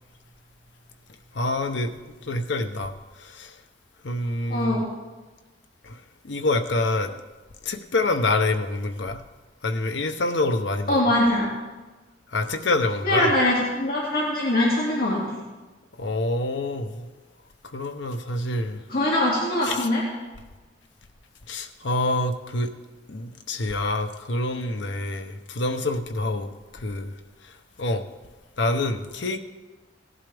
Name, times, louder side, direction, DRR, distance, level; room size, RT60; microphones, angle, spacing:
voice 1, 1.3-1.9 2.2-3.6 4.0-4.8 5.8-6.0 6.2-7.1 7.6-9.2 9.6-11.1 12.3-13.3 16.0-17.1 17.6-18.8 19.6-19.9 21.5-22.7 23.1-27.2 27.4-27.5 27.8-28.1 28.6-29.4, left 2 dB, 75° left, 7 dB, 0.9 m, -27 dB
voice 2, 4.5-4.8 10.9-11.5 13.0-15.4 18.9-20.0, left 1 dB, 55° left, -5 dB, 2.4 m, -22 dB
17.5 x 11.0 x 3.5 m, 1.2 s
head